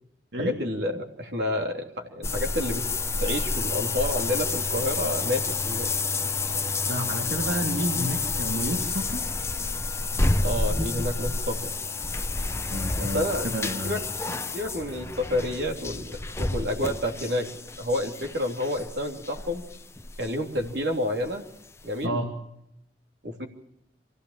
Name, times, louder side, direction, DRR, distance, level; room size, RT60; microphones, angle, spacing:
voice 1, 0.4-2.8 3.2-5.9 10.4-11.8 13.0-14.0 14.5-17.5 17.8-19.6 20.2-21.4 21.8-22.2 23.2-23.5, left 1 dB, 70° right, 2 dB, 3.2 m, -29 dB
sound 1, 2.2-20.9 21.2-21.3 21.8-21.9, left 3 dB, 15° left, 0.7 m, -29 dB
voice 2, 6.8-9.2 12.5-14.0 22.0-22.3, equal, 85° right, 2 dB, 2.3 m, -30 dB
25.0 x 16.0 x 7.4 m, 0.82 s
head